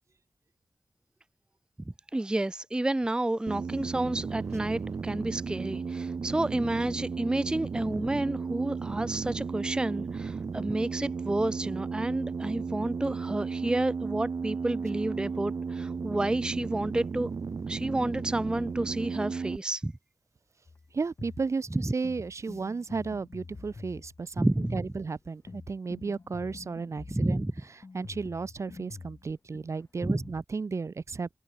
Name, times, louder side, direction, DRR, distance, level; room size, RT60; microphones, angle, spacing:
voice 1, 2.1-17.3 17.7-19.9 21.7-21.9 24.4-24.8 27.1-27.5 30.0-30.3, right 1 dB, 15° right, 0.4 m, -30 dB
sound 1, 3.5-19.6, right 5 dB, 85° right, 1.1 m, -34 dB
sound 2, 20.7-30.4, left 4 dB, 60° left, 4.1 m, -47 dB
voice 2, 20.9-27.4 27.9-31.3, right 4 dB, 60° right, 0.6 m, -34 dB
wide cardioid pair, 80°, 5 cm